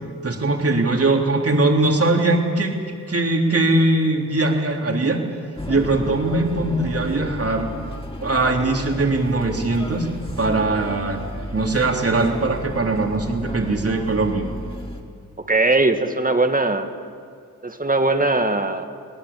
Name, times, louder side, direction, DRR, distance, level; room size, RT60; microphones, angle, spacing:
voice 1, 0.2-2.7 3.1-5.2 5.7-7.7 8.2-10.1 10.4-11.2 11.5-14.5, right 2 dB, 40° right, 2 dB, 3.5 m, -20 dB
sound 1, 5.6-15.0, left 1 dB, 15° left, 4.2 m, -33 dB
voice 2, 15.5-16.9 17.6-18.8, right 2 dB, 25° right, 7 dB, 2.1 m, -20 dB
23.5 x 18.0 x 8.7 m, 2.2 s
cardioid pair, 60°, 34 cm